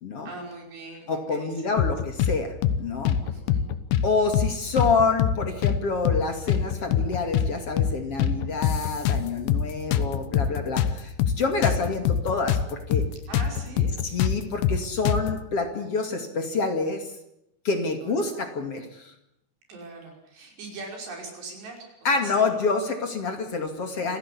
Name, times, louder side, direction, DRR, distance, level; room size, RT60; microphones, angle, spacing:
voice 1, 0.3-1.7 3.2-3.7 11.6-11.9 13.3-13.9 18.0-18.5 19.7-22.6, right 3 dB, 75° right, 1 dB, 7.7 m, -41 dB
voice 2, 1.1-2.5 2.8-3.2 4.0-13.1 14.1-17.1 17.6-19.1 22.0-24.2, left 4 dB, 40° left, 5 dB, 2.7 m, -27 dB
sound 1, 1.8-2.4 2.6-2.8 3.1-4.1 4.3-4.5 4.8-5.8 6.1-6.2 6.5-7.5 7.8-7.9 8.2-9.7 9.9-12.7 12.9-13.1 13.3-15.4, left 9 dB, 75° left, 3.0 m, -23 dB
26.5 x 16.0 x 8.5 m, 0.83 s
omnidirectional pair, 5.0 m